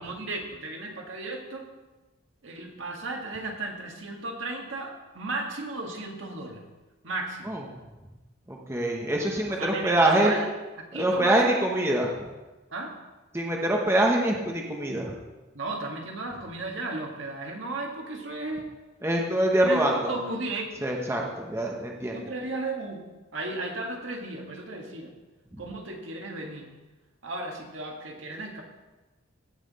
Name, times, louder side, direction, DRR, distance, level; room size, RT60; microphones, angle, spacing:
voice 1, 0.0-1.6 2.4-6.6 7.0-7.6 9.6-10.5 10.8-11.7 12.7-12.9 15.5-18.7 19.6-20.8 22.1-23.0 23.3-25.1 25.6-26.7 27.2-28.6, right 2 dB, 70° right, 1 dB, 1.6 m, -35 dB
voice 2, 8.5-10.3 10.9-12.1 13.3-15.1 19.0-20.2 20.8-22.2, right 1 dB, 15° right, -1 dB, 1.0 m, -24 dB
16.0 x 5.8 x 4.1 m, 1.2 s
head